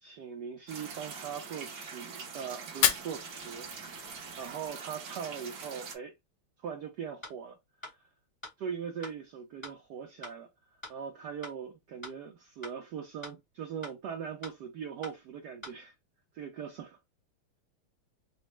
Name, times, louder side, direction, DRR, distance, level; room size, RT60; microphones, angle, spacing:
voice 1, 0.0-4.1 4.4-6.1 6.6-7.6 7.9-8.0 8.6-10.5 10.9-15.9 16.3-17.0, right 7 dB, 80° right, 0.9 m, -41 dB
sound 1, 0.7-6.0, right 5 dB, 60° right, 1.3 m, -44 dB
Fire, 2.7-4.7, left 9 dB, 75° left, 1.1 m, -32 dB
sound 2, 7.2-7.3 7.8-7.9 8.4-8.5 9.0-9.1 9.6-9.7 10.2-10.3 10.8-10.9 11.4-11.5 12.0-12.1 12.6-12.7 13.2-13.3 13.8-13.9 14.4-14.5 15.0-15.1 15.6-15.7, left 1 dB, 20° left, 0.7 m, -43 dB
4.1 x 2.1 x 3.1 m
omnidirectional pair, 2.4 m